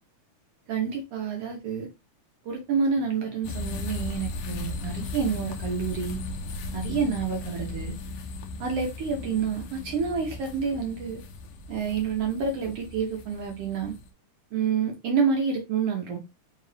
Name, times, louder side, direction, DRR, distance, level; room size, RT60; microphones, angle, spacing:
voice 1, 0.7-1.9 2.4-6.2 6.7-8.0 8.6-11.2 11.7-14.0 14.5-16.2, right 6 dB, 75° right, 1.4 m, -28 dB
sound 1, 3.4-14.1, left 3 dB, 80° left, 1.6 m, -36 dB
4.9 x 2.8 x 3.2 m
omnidirectional pair, 3.6 m